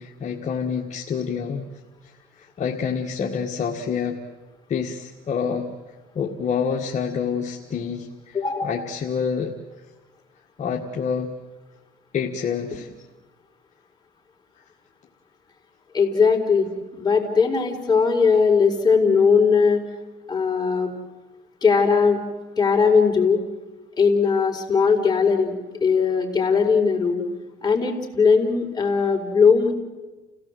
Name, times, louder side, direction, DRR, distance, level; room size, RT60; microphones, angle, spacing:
voice 1, 0.0-1.7 2.0-4.2 4.7-5.7 6.2-9.5 10.6-11.3 12.1-12.9, left 6 dB, 45° left, 0 dB, 1.7 m, -27 dB
voice 2, 8.3-8.8 15.9-16.7 17.0-19.8 20.3-20.9 21.6-22.2 22.6-23.4 24.0-25.5 25.8-27.2 27.6-29.7, left 5 dB, 25° left, 0 dB, 4.1 m, -19 dB
29.5 x 17.0 x 7.8 m, 1.2 s
cardioid pair, 110°, 17 cm